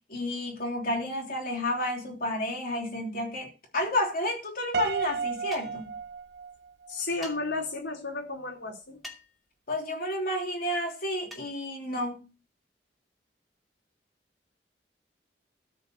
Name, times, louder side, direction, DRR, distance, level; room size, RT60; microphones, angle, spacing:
voice 1, 0.1-5.9 9.7-12.3, left 1 dB, 55° left, 3.4 m, -31 dB
Piano, 4.7-7.0, right 6 dB, 70° right, 0.6 m, -33 dB
sound 1, 5.5-5.9 7.2-7.4 9.0-9.4 11.3-11.5, left 1 dB, ahead, 2.5 m, -44 dB
voice 2, 6.9-9.0, left 3 dB, 80° left, 3.7 m, -33 dB
13.0 x 5.4 x 7.9 m
head